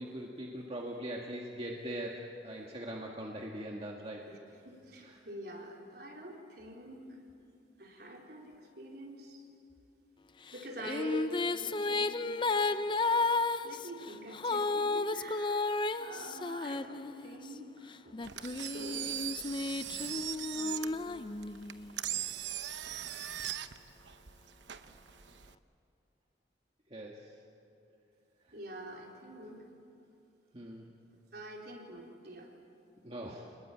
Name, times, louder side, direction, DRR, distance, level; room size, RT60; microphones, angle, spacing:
voice 1, 0.0-4.2 5.0-5.1 26.9-27.3 30.5-30.9 33.0-33.5, right 1 dB, 35° right, -1 dB, 1.7 m, -41 dB
voice 2, 4.3-7.2 7.8-9.5 10.5-12.4 13.6-19.1 20.5-21.3 28.5-29.7 31.1-32.5, equal, 60° right, -1 dB, 4.0 m, -46 dB
Female singing, 10.5-17.5 18.1-21.9, left 3 dB, 25° left, 0.5 m, -33 dB
Engine, 18.2-25.5, right 11 dB, 90° right, 0.9 m, -40 dB
28.0 x 20.5 x 8.9 m, 2.6 s
head